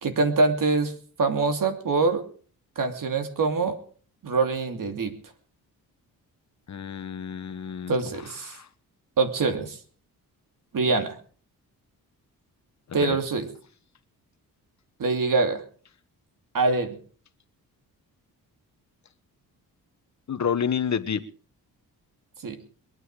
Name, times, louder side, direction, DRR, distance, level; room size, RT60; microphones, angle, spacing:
voice 1, 0.0-2.2 2.8-3.8 4.2-5.1 7.9-8.5 9.2-9.8 10.7-11.2 12.9-13.5 15.0-15.6 16.5-17.0 22.4-22.6, right 3 dB, 60° right, 6 dB, 2.8 m, -24 dB
voice 2, 6.7-8.0 8.4-8.7 13.0-13.2 20.3-21.2, left 7 dB, 50° left, 11 dB, 1.3 m, -29 dB
22.5 x 9.6 x 4.8 m, 0.43 s
cardioid pair, 80°, 37 cm